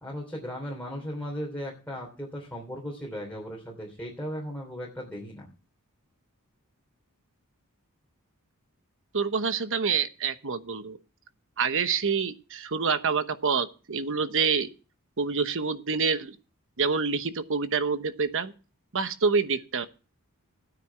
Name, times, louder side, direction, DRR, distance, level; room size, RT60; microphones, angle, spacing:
voice 1, 0.0-5.5, equal, 10° left, -3 dB, 3.1 m, -37 dB
voice 2, 9.1-11.0 11.6-14.7 15.2-16.4 16.8-18.5 18.9-19.9, right 5 dB, 60° right, 11 dB, 1.0 m, -27 dB
13.5 x 9.5 x 4.6 m, 0.35 s
head